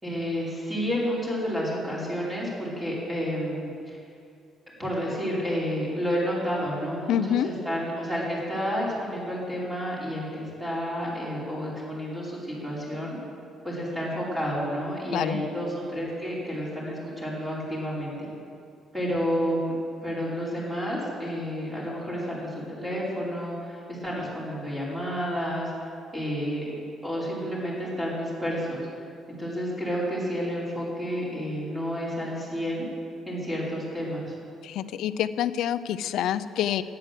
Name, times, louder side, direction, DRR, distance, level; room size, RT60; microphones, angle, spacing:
voice 1, 0.0-4.0 4.8-13.2 13.6-18.3 18.9-25.7 26.1-26.7 27.0-28.8 29.3-32.8 33.3-34.3, equal, 10° right, -6 dB, 4.6 m, -30 dB
voice 2, 7.1-7.5 15.1-15.4 34.6-36.8, left 10 dB, 75° left, 13 dB, 0.5 m, -27 dB
13.5 x 9.6 x 7.6 m, 2.4 s
cardioid pair, 125°, 0 cm